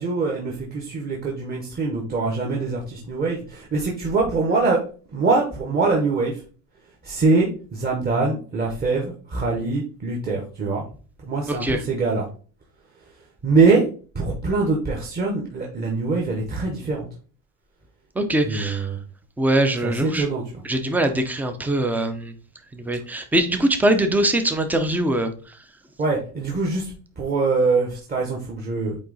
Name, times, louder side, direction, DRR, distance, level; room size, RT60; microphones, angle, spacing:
voice 1, 0.0-4.8 5.1-6.4 7.0-10.8 11.3-12.3 13.4-13.8 14.1-17.1 18.4-19.0 19.8-20.6 26.0-29.0, right 3 dB, 20° right, -1 dB, 0.9 m, -23 dB
voice 2, 11.5-11.8 18.2-18.9 19.4-20.3 20.6-22.3 22.7-25.3, right 1 dB, 5° right, 7 dB, 0.3 m, -22 dB
8.5 x 2.8 x 3.9 m, 0.39 s
cardioid pair, 165°, 42 cm